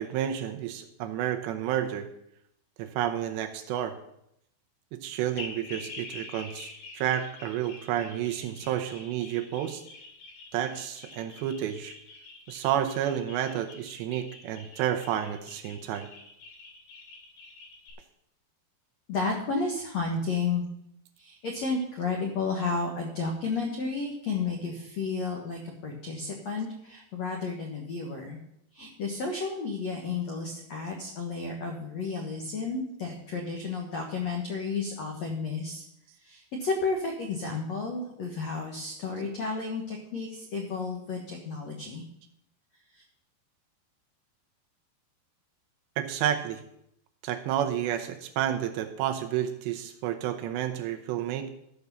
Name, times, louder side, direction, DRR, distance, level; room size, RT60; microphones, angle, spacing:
voice 1, 0.0-2.1 2.8-4.0 4.9-9.8 10.5-11.9 12.5-16.1 46.0-46.6 47.2-51.5, right 10 dB, 75° right, 6 dB, 2.9 m, -30 dB
sound 1, 5.4-17.9, left 3 dB, 60° left, 4.4 m, -46 dB
voice 2, 19.1-20.6 21.2-28.4 28.7-35.8 36.2-42.0 42.9-43.0, left 4 dB, 90° left, 1 dB, 1.5 m, -32 dB
13.5 x 6.3 x 6.9 m, 0.76 s
omnidirectional pair, 5.4 m